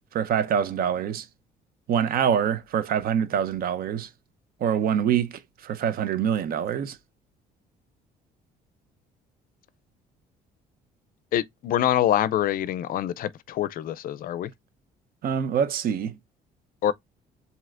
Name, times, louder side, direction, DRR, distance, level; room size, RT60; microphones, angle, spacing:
voice 1, 0.1-1.3 1.9-4.1 4.6-7.0 15.2-16.1, right 8 dB, 60° right, 0.7 m, -25 dB
voice 2, 11.3-14.5 16.8-16.9, left 11 dB, 60° left, 0.4 m, -25 dB
7.4 x 2.8 x 2.4 m
cardioid pair, 110°, 17 cm